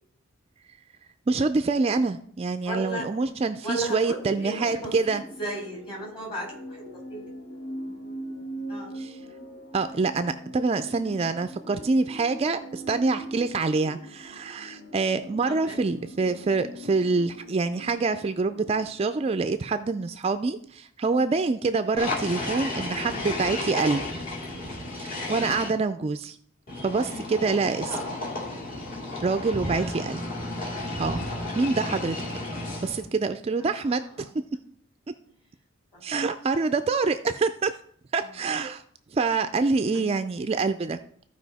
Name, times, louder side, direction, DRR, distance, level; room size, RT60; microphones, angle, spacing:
voice 1, 1.3-5.2 9.0-9.1 9.7-24.2 24.9-26.4 26.8-28.0 29.2-30.2 31.0-31.2 31.5-32.2 32.8-34.3 36.0-37.7 38.1-38.8 39.1-41.0, right 4 dB, 30° right, 10 dB, 0.3 m, -26 dB
voice 2, 2.6-3.0 3.6-6.8 7.1-7.3 7.8-7.9 8.7-8.9 11.0-11.1 15.4-15.8 16.2-16.4 24.5-24.8 27.9-28.1 29.6-30.0 33.6-34.3 38.2-38.3, right 1 dB, 25° left, -2 dB, 4.0 m, -36 dB
sound 1, 4.5-18.8, equal, 65° left, 1.9 m, -42 dB
sound 2, 22.0-25.7 26.7-33.1, left 2 dB, 40° left, 2.5 m, -33 dB
14.0 x 4.9 x 4.1 m, 0.63 s
head